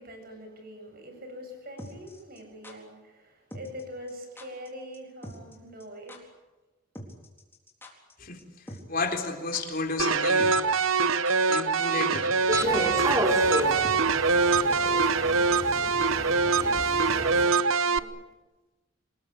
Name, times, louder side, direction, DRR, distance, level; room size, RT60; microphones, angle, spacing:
voice 1, 0.0-6.3 12.9-18.3, equal, 45° right, 5 dB, 7.8 m, -44 dB
sound 1, 1.8-2.7 3.5-3.8 4.1-4.2 4.4-4.7 4.9-5.0 5.2-5.5 5.8-5.9 6.1-6.2 6.9-8.1 8.4-8.5 8.7-9.3 9.5-9.6 10.4-10.7 11.0-11.6 11.8-11.9 12.1-12.4 12.7-12.8 13.0-13.1 13.8-15.0 15.3-15.4, equal, 10° left, 4.0 m, -43 dB
voice 2, 8.9-10.6 11.0-11.1 11.5-12.3, left 3 dB, 45° left, 3 dB, 3.8 m, -32 dB
sound 2, 10.0-18.0, right 4 dB, 85° right, 1.0 m, -24 dB
sound 3, 12.5-17.5, right 1 dB, 15° right, 2.8 m, -31 dB
26.5 x 20.5 x 8.9 m, 1.1 s
head